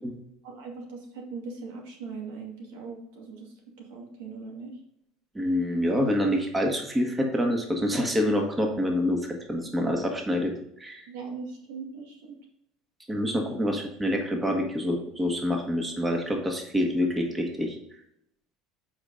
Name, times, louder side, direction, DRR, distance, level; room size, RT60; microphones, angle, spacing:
voice 1, 0.4-4.8 11.1-12.4, right 4 dB, 85° right, 0 dB, 2.3 m, -40 dB
voice 2, 5.4-10.5 10.8-11.1 13.1-17.8, equal, 15° right, 2 dB, 1.6 m, -26 dB
8.1 x 5.0 x 3.9 m, 0.76 s
supercardioid pair, 100°, 0 cm